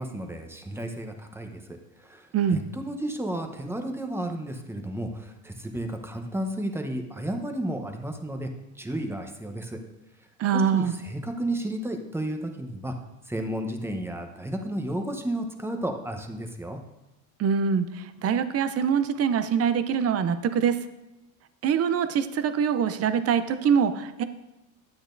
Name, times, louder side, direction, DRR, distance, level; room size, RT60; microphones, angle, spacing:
voice 1, 0.0-1.6 2.0-8.5 8.8-9.8 10.5-12.9 13.3-16.8, right 1 dB, 5° right, 4 dB, 0.8 m, -32 dB
voice 2, 10.4-10.9 17.4-20.8 21.6-24.2, right 7 dB, 35° right, 11 dB, 0.6 m, -24 dB
10.5 x 8.7 x 2.6 m, 0.99 s
supercardioid pair, 105°, 43 cm